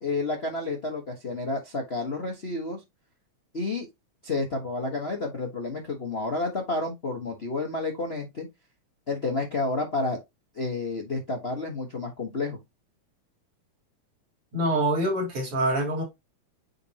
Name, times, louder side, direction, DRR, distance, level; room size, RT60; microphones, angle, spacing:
voice 1, 0.0-2.8 3.5-3.9 4.2-8.5 9.1-10.2 10.5-12.6, left 3 dB, 75° left, 0.5 m, -30 dB
voice 2, 14.5-16.0, right 1 dB, 50° right, 3.6 m, -25 dB
8.7 x 4.1 x 2.8 m
omnidirectional pair, 3.3 m